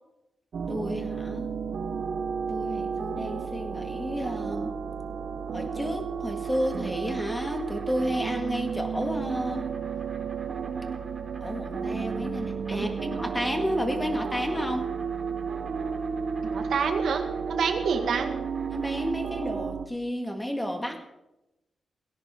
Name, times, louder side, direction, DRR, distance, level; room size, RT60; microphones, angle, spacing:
sound 1, 0.5-19.9, right 6 dB, 60° right, 0.9 m, -32 dB
voice 1, 0.7-1.5 2.5-4.7 5.5-9.6 11.4-14.9 18.7-21.0, equal, 5° left, 4 dB, 1.9 m, -31 dB
Insect, 6.1-19.1, right 3 dB, 35° right, 4.4 m, -50 dB
voice 2, 16.4-18.3, right 6 dB, 75° right, 5 dB, 1.9 m, -28 dB
19.0 x 17.0 x 3.7 m, 0.94 s
wide cardioid pair, 155°, 0 cm